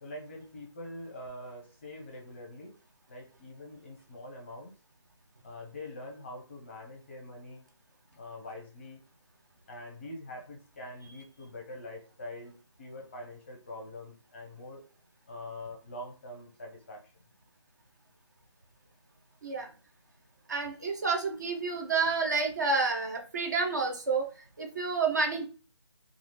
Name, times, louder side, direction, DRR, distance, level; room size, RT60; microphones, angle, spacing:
voice 1, 0.0-2.7 3.1-4.7 5.4-7.6 8.2-9.0 9.7-14.8 15.3-17.0, left 1 dB, 25° left, 1 dB, 0.7 m, -44 dB
voice 2, 20.5-24.3 24.6-25.5, right 4 dB, 35° right, 2 dB, 0.6 m, -29 dB
3.2 x 2.4 x 2.9 m, 0.35 s
figure-of-eight pair, 165°, 16 cm